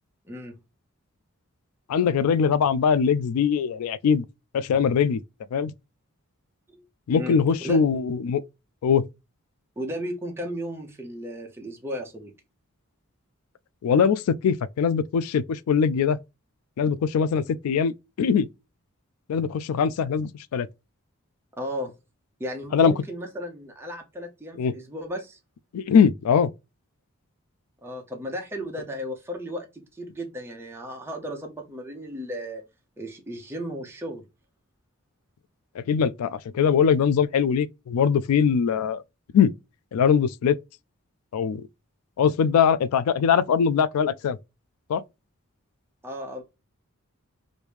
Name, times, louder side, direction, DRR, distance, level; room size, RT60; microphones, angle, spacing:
voice 1, 0.2-0.6 6.7-6.8 7.2-7.4 7.6-7.8 9.8-12.3 21.6-21.9 22.4-25.4 27.8-32.6 33.0-34.2 46.0-46.4, equal, 10° right, 0.7 m, -35 dB
voice 2, 1.9-4.2 4.5-5.2 5.5-5.7 7.1-8.4 8.8-9.0 13.8-16.2 16.8-18.5 19.3-20.7 22.7-22.9 24.6-24.7 25.7-26.5 35.8-39.0 39.3-39.5 39.9-40.6 41.3-41.6 42.2-44.4 44.9-45.0, left 6 dB, 85° left, 0.3 m, -22 dB
3.1 x 2.6 x 3.3 m
head